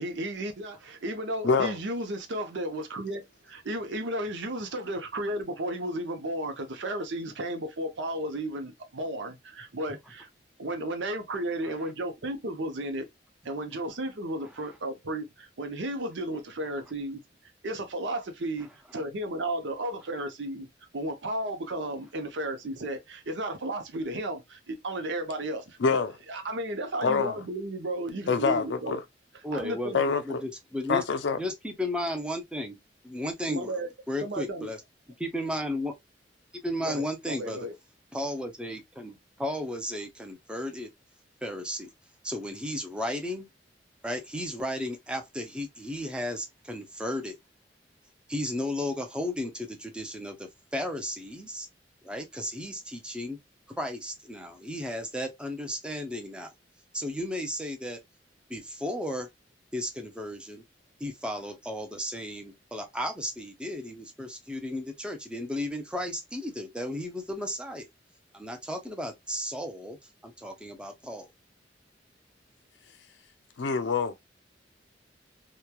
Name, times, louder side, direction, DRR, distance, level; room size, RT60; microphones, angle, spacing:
voice 1, 0.0-10.3 10.6-13.1 13.4-17.2 17.6-20.7 20.9-26.0 26.3-29.0 29.5-30.0 33.5-33.9 34.2-34.7 36.8-37.7, right 1 dB, 75° right, 0.7 m, -34 dB
voice 2, 1.4-1.8 25.8-26.1 27.0-27.4 28.3-29.0 29.9-30.4 30.9-31.4 73.6-74.1, left 5 dB, 75° left, 0.5 m, -25 dB
voice 3, 29.4-29.9 30.3-31.0 31.3-32.8 33.0-33.7 34.1-34.8 35.2-35.9 36.6-37.7 38.1-40.9 41.4-41.9 42.2-43.5 44.0-47.4 48.3-51.7 52.0-53.4 53.7-56.5 56.9-58.0 58.5-59.3 59.7-60.6 61.0-67.8 68.3-70.0 70.2-71.3, left 1 dB, 5° right, 0.6 m, -34 dB
3.0 x 2.2 x 2.2 m
head